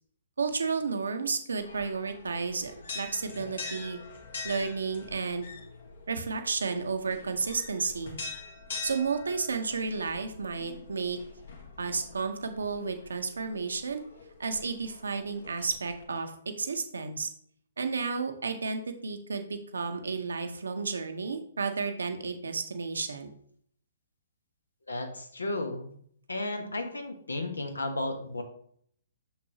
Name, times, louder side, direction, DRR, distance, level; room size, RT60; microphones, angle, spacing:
voice 1, 0.4-4.0 4.4-5.5 6.1-8.2 8.8-11.2 11.8-14.0 14.4-17.3 17.8-23.3, right 4 dB, 75° right, 6 dB, 0.9 m, -32 dB
sound 1, 1.6-16.0, left 4 dB, 65° left, 1.4 m, -45 dB
voice 2, 24.9-25.9 26.3-28.4, left 2 dB, 85° left, 5 dB, 1.1 m, -33 dB
6.3 x 5.7 x 2.8 m, 0.64 s
figure-of-eight pair, 125°, 0 cm